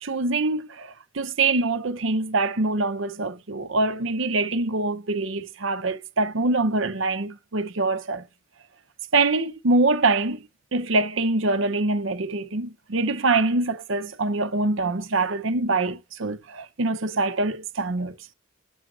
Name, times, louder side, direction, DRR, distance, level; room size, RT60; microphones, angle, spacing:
voice 1, 0.0-8.2 9.1-10.4 10.7-18.2, right 3 dB, 65° right, 0.8 m, -24 dB
7.1 x 6.1 x 3.9 m
head